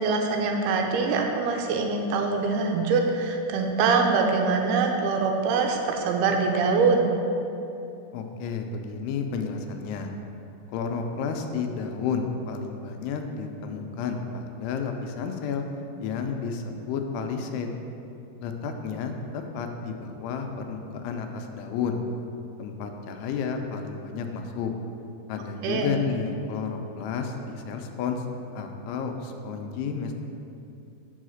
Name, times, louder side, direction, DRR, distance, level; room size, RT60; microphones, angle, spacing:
voice 1, 0.0-7.1 25.6-25.9, right 4 dB, 80° right, 2 dB, 2.5 m, -24 dB
voice 2, 8.1-10.1 10.7-15.7 16.0-17.8 18.4-22.0 22.6-24.7 25.3-28.3 28.6-30.1, left 5 dB, 85° left, 5 dB, 2.6 m, -31 dB
5.6 x 5.5 x 6.2 m, 2.8 s
omnidirectional pair, 4.7 m